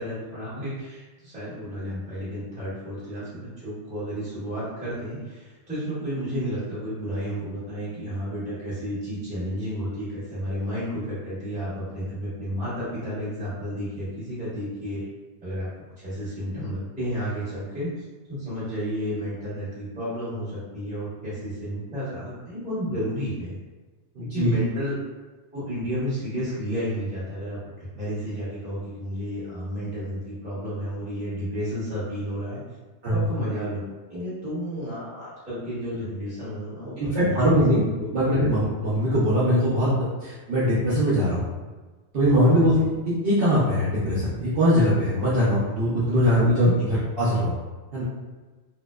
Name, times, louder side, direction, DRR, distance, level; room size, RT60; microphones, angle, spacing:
voice 1, 0.0-15.1 15.4-15.7 16.0-17.9 18.4-23.6 24.2-24.9 25.5-27.6 27.9-32.6 33.1-33.8 34.1-37.6 37.9-38.4 42.7-42.8 46.4-46.7, equal, 5° right, -11 dB, 0.9 m, -32 dB
voice 2, 24.2-24.5 33.0-33.3 37.0-39.9 40.2-41.4 42.1-42.8 43.0-47.6 47.9-48.0, equal, 60° right, -8 dB, 0.7 m, -21 dB
2.7 x 2.0 x 2.2 m, 1.3 s
omnidirectional pair, 1.2 m